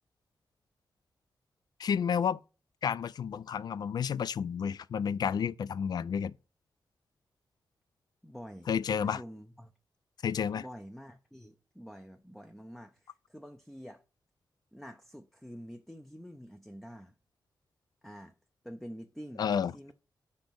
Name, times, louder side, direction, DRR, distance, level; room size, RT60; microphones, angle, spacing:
voice 1, 1.8-2.4 2.8-6.3 8.7-9.2 10.2-10.6 19.4-19.7, left 7 dB, 60° left, 0.3 m, -31 dB
voice 2, 8.2-8.7 9.0-9.7 10.5-14.0 14.7-17.1 18.0-18.3 18.6-19.9, equal, ahead, 0.5 m, -47 dB
5.4 x 5.1 x 5.9 m
wide cardioid pair, 155°, 8 cm